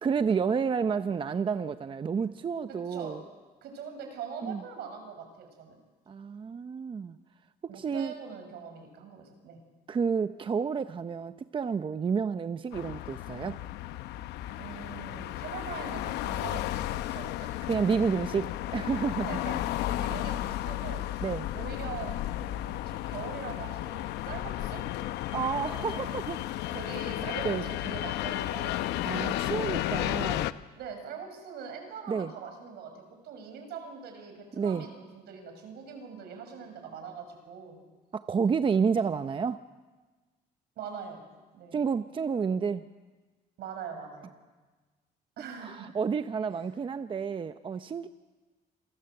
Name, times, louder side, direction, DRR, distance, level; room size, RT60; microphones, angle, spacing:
voice 1, 0.0-3.2 4.4-4.6 6.1-7.2 7.6-8.1 9.9-13.6 17.7-19.3 21.2-21.5 25.3-26.4 27.4-27.6 29.0-30.6 32.1-32.3 34.6-34.8 38.1-39.6 41.7-42.8 45.6-48.1, right 6 dB, 30° right, 10 dB, 0.7 m, -30 dB
voice 2, 2.7-3.2 3.6-5.8 7.7-9.6 14.6-17.6 19.2-24.8 25.9-26.2 26.5-28.8 29.3-29.7 30.8-37.8 40.8-41.2 41.5-41.8 43.6-44.3 45.4-45.9 46.6-46.7, right 6 dB, 75° right, 5 dB, 6.4 m, -42 dB
sound 1, 12.7-30.5, left 14 dB, 85° left, 0.8 m, -33 dB
27.5 x 19.0 x 7.9 m, 1.3 s
cardioid pair, 110°, 17 cm